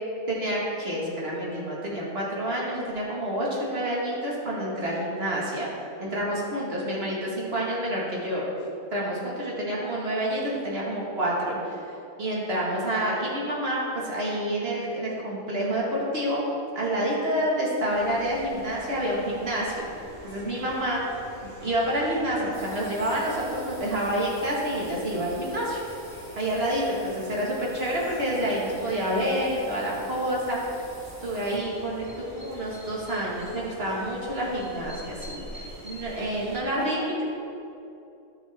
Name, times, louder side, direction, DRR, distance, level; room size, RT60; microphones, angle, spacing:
voice 1, 0.3-5.7 6.0-8.4 8.9-11.8 12.2-16.4 16.7-19.9 20.2-21.0 21.6-25.8 26.4-30.6 31.2-32.0 32.3-37.2, right 1 dB, 45° right, -4 dB, 2.0 m, -28 dB
sound 1, 17.9-36.6, equal, 75° right, 3.0 m, -45 dB
sound 2, 22.5-31.6, equal, 10° right, 1.8 m, -50 dB
13.5 x 5.8 x 3.6 m, 2.8 s
omnidirectional pair, 1.4 m